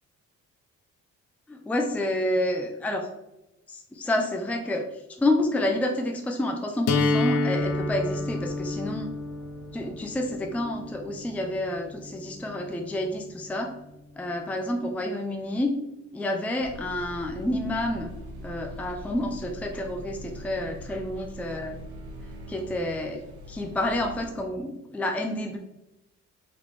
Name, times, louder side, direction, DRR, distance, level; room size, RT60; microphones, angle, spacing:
voice 1, 1.5-3.1 3.7-9.1 9.7-13.7 14.2-15.7 16.1-18.1 18.4-21.8 22.5-25.6, left 1 dB, 5° left, 3 dB, 0.5 m, -29 dB
sound 1, 6.9-12.8, left 3 dB, 60° left, 0.6 m, -30 dB
Piano, 7.5-15.5, right 1 dB, 40° right, 1.2 m, -50 dB
sound 2, 16.6-24.3, equal, 80° right, 1.0 m, -42 dB
3.9 x 3.4 x 3.1 m, 0.93 s
cardioid pair, 90°, 30 cm